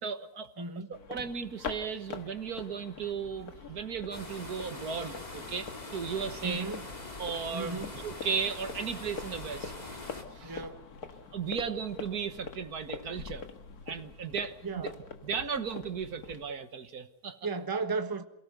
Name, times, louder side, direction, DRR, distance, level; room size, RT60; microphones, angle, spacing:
voice 1, 0.0-0.5 0.9-6.7 7.2-9.7 10.3-10.6 11.3-13.5 13.9-14.9 15.2-17.4, right 6 dB, 70° right, 1.9 m, -36 dB
voice 2, 0.6-1.0 6.4-6.9 7.5-8.0 10.4-10.9 14.6-15.0 17.4-18.2, right 4 dB, 15° right, 1.3 m, -35 dB
sound 1, 0.9-16.5, left 5 dB, 65° left, 2.1 m, -44 dB
sound 2, 4.1-10.2, left 2 dB, 25° left, 3.0 m, -44 dB
28.0 x 18.0 x 6.8 m
omnidirectional pair, 1.7 m